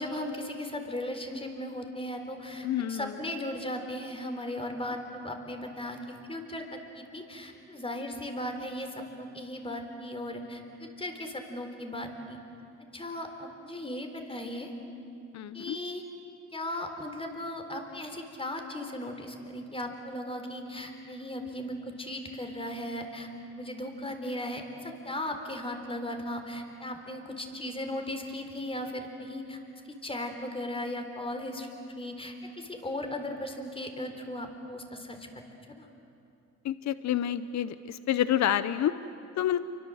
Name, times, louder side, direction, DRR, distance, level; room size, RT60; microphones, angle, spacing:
voice 1, 0.0-12.4 12.9-14.7 15.5-16.0 16.5-29.6 30.0-31.7 32.0-35.3 35.8-35.9, left 1 dB, 20° left, 5 dB, 4.0 m, -37 dB
voice 2, 2.6-3.1 15.3-15.8 36.6-38.9 39.4-39.6, left 11 dB, 65° left, 13 dB, 0.8 m, -28 dB
29.0 x 24.0 x 7.9 m, 2.7 s
cardioid pair, 90°, 30 cm